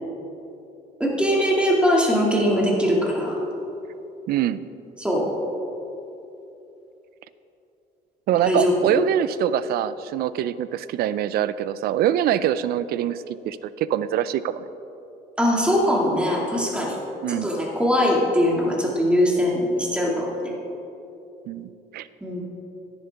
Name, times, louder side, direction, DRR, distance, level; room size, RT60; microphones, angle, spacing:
voice 1, 1.0-3.4 5.0-5.3 8.4-8.9 15.4-17.0 17.3-20.3 22.2-22.4, equal, 5° right, -3 dB, 2.1 m, -21 dB
voice 2, 4.3-4.7 8.3-14.7 17.2-17.5 21.5-22.1, right 11 dB, 65° right, 15 dB, 0.4 m, -24 dB
10.5 x 10.0 x 3.5 m, 2.9 s
cardioid pair, 110°, 17 cm